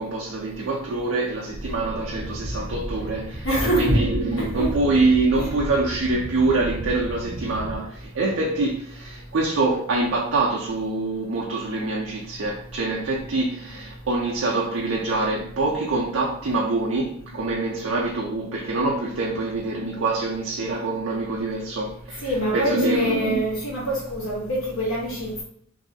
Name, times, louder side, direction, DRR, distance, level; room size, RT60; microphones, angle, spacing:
voice 1, 0.0-3.5 3.7-23.4, right 2 dB, 65° right, 0.5 m, -25 dB
sound 1, 1.5-7.8, right 1 dB, 10° right, 1.0 m, -34 dB
voice 2, 3.4-3.9 4.4-4.7 5.4-5.5 22.2-25.4, equal, 70° left, 1.3 m, -25 dB
3.1 x 2.6 x 2.6 m
head